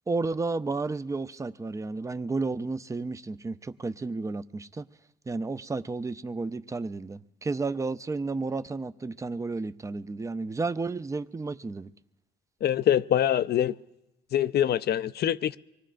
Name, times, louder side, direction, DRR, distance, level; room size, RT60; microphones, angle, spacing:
voice 1, 0.1-4.8 5.3-11.9, right 3 dB, 15° right, 0.4 m, -32 dB
voice 2, 12.6-13.7 14.3-15.6, left 10 dB, 55° left, 0.4 m, -24 dB
24.5 x 20.0 x 2.5 m
cardioid pair, 90°, 20 cm